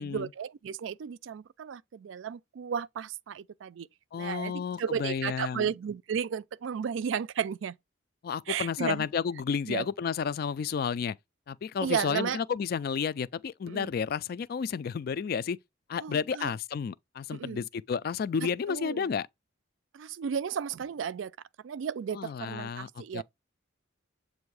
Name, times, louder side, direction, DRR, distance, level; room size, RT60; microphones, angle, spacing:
voice 1, 0.0-3.9 4.2-7.8 8.5-9.1 9.7-9.9 11.8-12.4 13.7-13.9 16.0-16.5 17.3-17.6 18.7-19.1 19.9-21.3 21.6-23.2, right 7 dB, 80° right, 0.4 m, -34 dB
voice 2, 4.1-5.7 8.2-11.2 11.5-15.6 15.9-19.3 22.1-23.2, left 6 dB, 50° left, 0.3 m, -31 dB
7.8 x 2.6 x 4.7 m
head